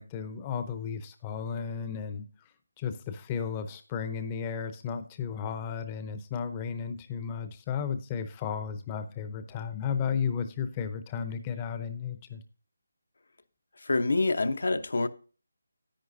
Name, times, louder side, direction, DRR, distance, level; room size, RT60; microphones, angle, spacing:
voice 1, 0.0-2.3 2.8-12.4, left 7 dB, 20° left, 0.7 m, -34 dB
voice 2, 13.8-15.1, left 3 dB, 70° left, 0.9 m, -26 dB
10.5 x 9.3 x 2.6 m
figure-of-eight pair, 160°, 0 cm